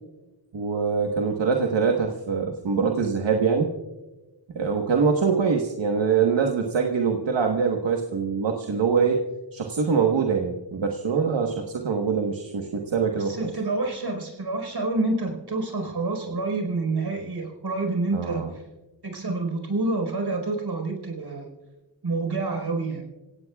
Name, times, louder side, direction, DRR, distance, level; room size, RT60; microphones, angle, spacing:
voice 1, 0.5-3.7 4.5-9.2 9.5-13.5 18.1-18.5, right 5 dB, 80° right, 2 dB, 1.4 m, -24 dB
voice 2, 13.1-18.6 19.0-21.5 22.0-23.0, right 3 dB, 60° right, 4 dB, 4.7 m, -28 dB
27.0 x 16.5 x 2.4 m, 1.1 s
wide cardioid pair, 75°, 44 cm